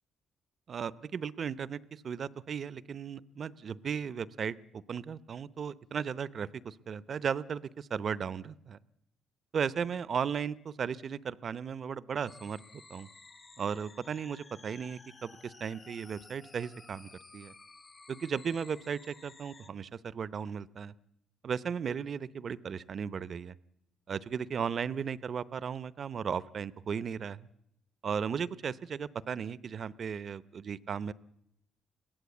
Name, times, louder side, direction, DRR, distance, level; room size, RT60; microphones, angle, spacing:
voice 1, 0.7-8.8 9.5-12.6 12.9-13.1 13.6-17.5 18.1-20.9 21.4-23.5 24.1-27.5 28.0-31.1, right 7 dB, 50° right, 18 dB, 0.7 m, -36 dB
sound 1, 12.3-19.7, left 3 dB, 30° left, 0.8 m, -54 dB
22.0 x 16.5 x 8.3 m, 0.78 s
cardioid pair, 90°, 0 cm